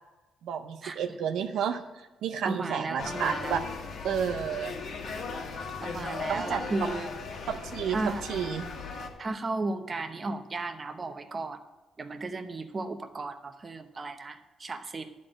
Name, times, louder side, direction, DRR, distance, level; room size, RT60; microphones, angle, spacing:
voice 1, 0.4-3.6 4.0-4.7 6.3-6.9 7.5-8.6, right 7 dB, 80° right, 7 dB, 0.5 m, -31 dB
voice 2, 2.4-3.6 5.8-7.1 7.9-8.2 9.2-11.6 12.0-15.0, right 3 dB, 35° right, 8 dB, 0.8 m, -34 dB
sound 1, 3.0-9.1, left 4 dB, 65° left, 1.4 m, -37 dB
11.0 x 4.3 x 7.8 m, 1.1 s
cardioid pair, 90°, 0 cm